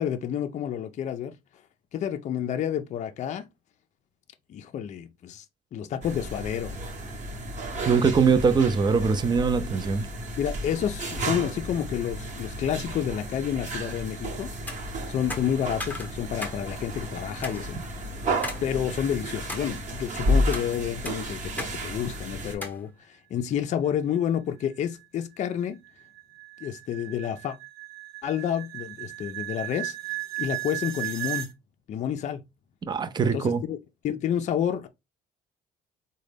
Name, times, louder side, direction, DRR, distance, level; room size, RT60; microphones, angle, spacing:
voice 1, 0.0-1.3 1.9-3.5 4.5-5.4 5.7-6.8 10.4-14.5 15.1-17.8 18.6-25.8 26.6-27.6 28.2-30.0 30.4-31.5 31.9-32.4 33.2-33.8 34.0-34.9, left 9 dB, 45° left, 0.4 m, -29 dB
sound 1, 6.0-22.5, equal, 45° right, 1.0 m, -32 dB
voice 2, 7.9-10.1 32.9-33.6, right 5 dB, 25° right, 0.5 m, -22 dB
sound 2, 14.7-14.8 15.3-16.6 16.9-17.0 17.4-17.6 18.4-18.6 19.1-19.7 20.3-20.7 21.0-21.7 22.0-22.1 22.6-22.8, left 2 dB, 10° left, 0.8 m, -36 dB
sound 3, 24.3-31.5, right 18 dB, 75° right, 1.0 m, -36 dB
3.8 x 2.2 x 3.3 m
cardioid pair, 110°, 17 cm